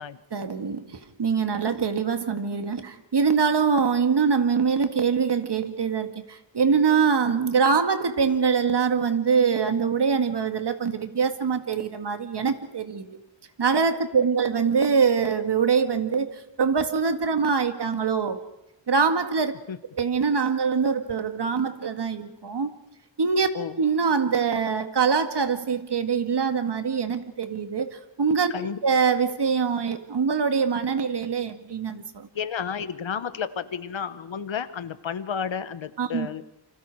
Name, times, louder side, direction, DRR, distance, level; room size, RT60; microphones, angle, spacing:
voice 1, 0.3-13.2 13.6-18.5 18.9-19.5 20.0-22.7 23.2-23.5 23.8-28.5 28.8-32.3 36.0-36.3, right 6 dB, 60° right, 7 dB, 2.0 m, -24 dB
voice 2, 32.3-36.4, left 7 dB, 75° left, 12 dB, 1.4 m, -31 dB
29.0 x 25.5 x 4.9 m, 0.85 s
wide cardioid pair, 90°, 46 cm